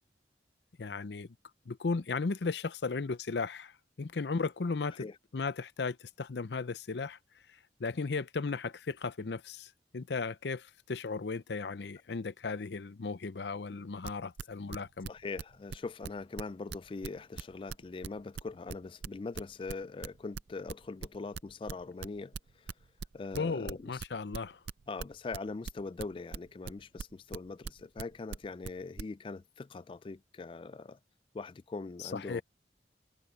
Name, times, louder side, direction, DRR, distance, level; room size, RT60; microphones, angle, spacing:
voice 1, 0.8-1.3 1.7-5.1 5.3-7.2 7.5-15.1 23.4-24.6 32.0-32.4, left 4 dB, 75° left, 0.6 m, -36 dB
sound 1, 14.0-15.8 16.0-20.1 20.3-24.1 24.3-29.0, right 5 dB, 70° right, 0.5 m, -40 dB
voice 2, 15.1-22.7 23.1-24.0 24.9-31.0 31.3-32.4, left 3 dB, 30° left, 0.3 m, -42 dB
head